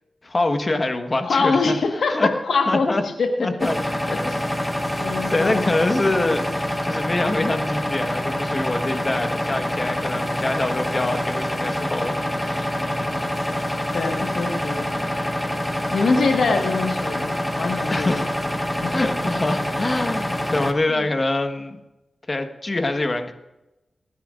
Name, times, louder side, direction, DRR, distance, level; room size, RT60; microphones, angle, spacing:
voice 1, 0.2-1.8 2.1-2.3 2.7-3.0 3.4-3.8 5.3-6.4 6.8-13.2 17.9-18.3 18.9-21.8 22.3-23.3, left 2 dB, 40° left, 6 dB, 1.4 m, -25 dB
voice 2, 1.2-2.9 3.2-3.3 4.1-4.4 5.0-5.6 13.9-15.1 15.9-18.2 18.8-18.9, left 4 dB, 85° left, 3 dB, 1.5 m, -23 dB
sound 1, 3.6-20.7, left 1 dB, 10° left, 1.4 m, -26 dB
28.0 x 10.5 x 2.6 m, 0.98 s
cardioid pair, 50°, 0 cm